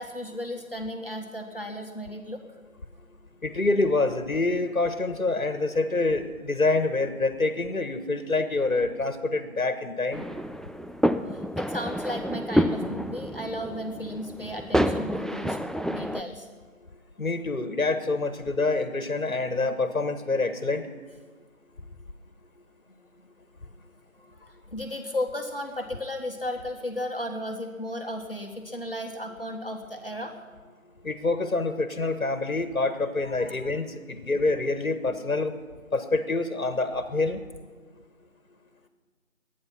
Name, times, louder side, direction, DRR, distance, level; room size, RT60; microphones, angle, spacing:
voice 1, 0.0-2.6 11.3-15.6 15.9-16.5 23.2-23.3 23.7-23.8 24.1-30.4 33.2-33.6, left 1 dB, 40° left, 3 dB, 1.5 m, -35 dB
voice 2, 3.4-10.2 17.2-20.9 31.0-35.6 35.9-37.4, left 3 dB, 70° left, 10 dB, 1.5 m, -26 dB
sound 1, 10.1-16.2, equal, ahead, 0.3 m, -28 dB
21.5 x 9.6 x 5.9 m, 1.5 s
figure-of-eight pair, 180°, 42 cm